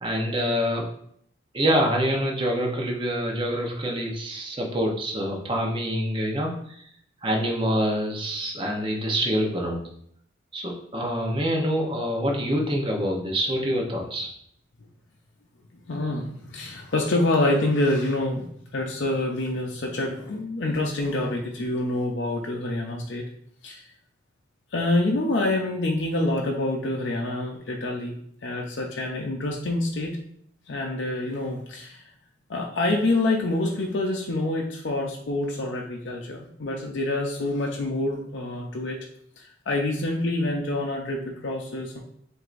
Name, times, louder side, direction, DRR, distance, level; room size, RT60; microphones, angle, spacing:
voice 1, 0.0-0.8 1.5-6.8 7.2-9.8 10.5-14.3, equal, 25° right, -1 dB, 0.8 m, -26 dB
voice 2, 15.9-18.4 18.7-23.2 23.6-23.9 24.7-28.1 28.4-30.2 30.7-32.1 32.5-39.0 39.4-42.0, left 2 dB, 70° left, 0 dB, 0.6 m, -26 dB
7.5 x 2.6 x 2.5 m, 0.68 s
head